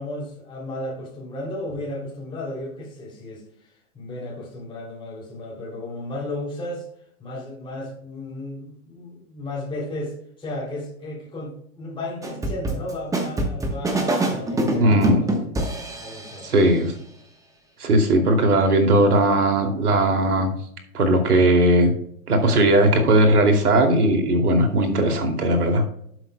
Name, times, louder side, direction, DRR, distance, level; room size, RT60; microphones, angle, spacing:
voice 1, 0.0-6.9 7.2-15.5 16.0-16.5, left 1 dB, 10° left, 3.0 m, -34 dB
sound 1, 12.2-16.5, right 1 dB, 5° right, 1.1 m, -25 dB
voice 2, 14.8-15.2 16.4-16.9 17.8-20.5 20.9-21.9 22.3-25.8, right 1 dB, 90° right, 2.7 m, -18 dB
11.5 x 8.0 x 2.2 m
hypercardioid pair, 130°, 44 cm